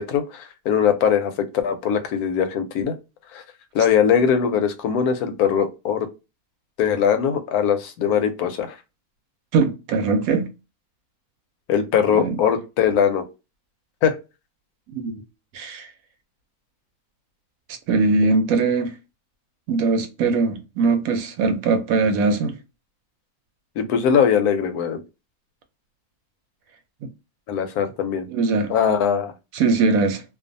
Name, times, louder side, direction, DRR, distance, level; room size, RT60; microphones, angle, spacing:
voice 1, 0.0-1.3 1.6-2.9 3.3-3.4 3.7-6.1 6.8-8.7 11.7-13.2 14.0-14.2 23.8-25.0 27.5-28.3 28.7-29.3, left 7 dB, 85° left, 1.1 m, -21 dB
voice 2, 9.5-10.5 12.1-12.4 14.9-15.1 15.5-15.9 17.9-18.9 19.7-22.5 28.3-28.7 29.5-30.2, right 4 dB, 75° right, 1.0 m, -21 dB
2.5 x 2.3 x 2.5 m
omnidirectional pair, 1.5 m